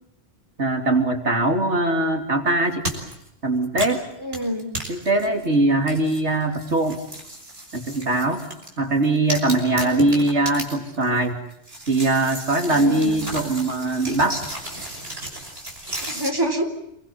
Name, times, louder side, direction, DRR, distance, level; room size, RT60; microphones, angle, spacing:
voice 1, 0.6-2.9 3.4-4.0 4.9-7.0 7.7-8.4 8.8-11.4 11.9-14.4, right 2 dB, 90° right, 4 dB, 3.5 m, -21 dB
sound 1, 2.8-3.3 3.6-5.5 5.9-8.7 9.0-11.2 11.5-16.3, right 1 dB, 60° right, 6.2 m, -34 dB
voice 2, 4.2-4.7 9.8-10.1 12.7-13.2 16.1-16.7, equal, 20° right, 4 dB, 3.9 m, -27 dB
28.5 x 23.5 x 7.5 m, 0.79 s
omnidirectional pair, 1.1 m